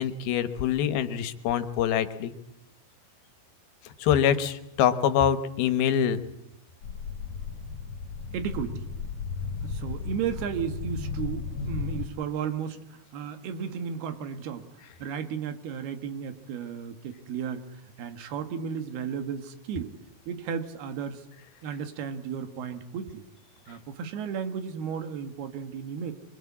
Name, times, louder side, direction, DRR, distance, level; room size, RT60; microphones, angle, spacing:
voice 1, 0.0-2.3 3.8-6.2, left 9 dB, 75° left, 11 dB, 3.0 m, -25 dB
sound 1, 6.8-12.0, left 5 dB, 50° left, 3.3 m, -35 dB
voice 2, 8.3-8.8 9.6-14.7 15.0-19.9 20.3-21.2 21.6-23.2 23.7-26.1, right 7 dB, 80° right, 8 dB, 3.6 m, -34 dB
24.0 x 24.0 x 8.6 m, 0.82 s
omnidirectional pair, 4.4 m